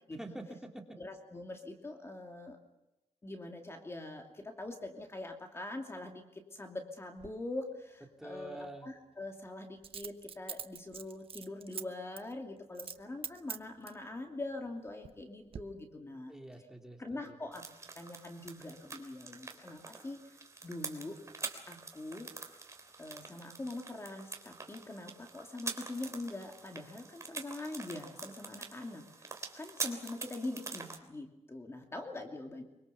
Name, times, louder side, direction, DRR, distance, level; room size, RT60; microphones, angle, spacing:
voice 1, 0.2-0.8 8.2-8.9 16.3-17.3, right 1 dB, 5° right, 2 dB, 3.1 m, -46 dB
voice 2, 1.0-2.6 3.2-16.3 17.0-17.6 17.9-20.2 20.6-21.2 21.7-22.3 23.0-32.6, left 2 dB, 25° left, 3 dB, 2.7 m, -43 dB
Coin (dropping), 7.2-7.3 9.8-11.8 12.2-12.3 12.7-13.0 13.2-14.0 14.7-15.2 15.5-15.6, right 7 dB, 55° right, 1.1 m, -43 dB
sound 1, 17.5-31.0, right 4 dB, 25° right, 3.3 m, -45 dB
25.0 x 24.0 x 7.0 m, 0.94 s
wide cardioid pair, 140°, 11 cm